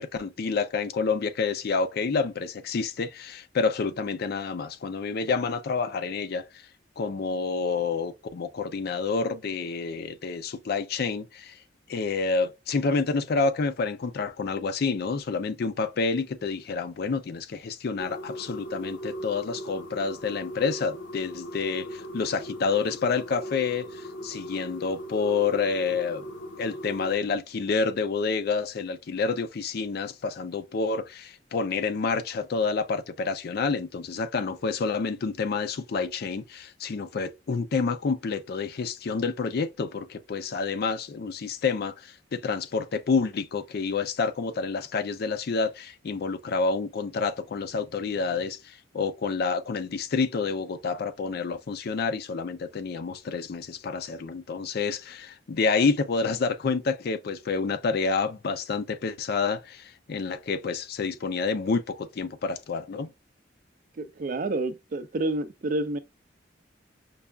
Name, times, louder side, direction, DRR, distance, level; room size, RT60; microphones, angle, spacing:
voice 1, 0.0-6.4 7.0-11.5 11.9-26.2 26.6-63.1, left 4 dB, 55° left, 0.4 m, -28 dB
sound 1, 18.0-27.1, equal, 80° left, 0.8 m, -39 dB
voice 2, 64.0-66.0, right 2 dB, 45° right, 0.4 m, -29 dB
5.3 x 2.3 x 2.2 m
head